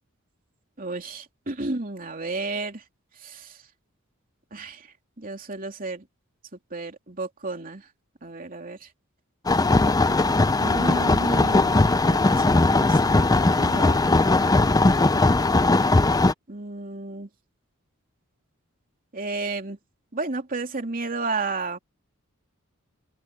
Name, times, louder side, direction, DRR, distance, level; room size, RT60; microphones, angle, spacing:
voice 1, 0.8-2.8 3.2-3.6 4.5-4.9 5.2-6.0 6.7-7.9 8.2-8.9 10.6-14.1 16.5-17.3 19.1-19.8 20.1-21.8, right 3 dB, 40° right, 3.0 m, -32 dB
sound 1, 9.5-16.3, left 2 dB, 20° left, 0.5 m, -19 dB
open air
head